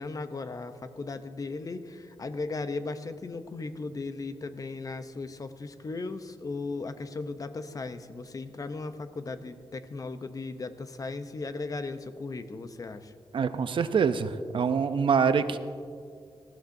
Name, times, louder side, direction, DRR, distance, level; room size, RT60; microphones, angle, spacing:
voice 1, 0.0-13.1, left 3 dB, 40° left, 10 dB, 0.7 m, -37 dB
voice 2, 13.3-15.6, right 6 dB, 60° right, 11 dB, 0.5 m, -25 dB
19.0 x 14.5 x 2.6 m, 2.3 s
wide cardioid pair, 115°, 10 cm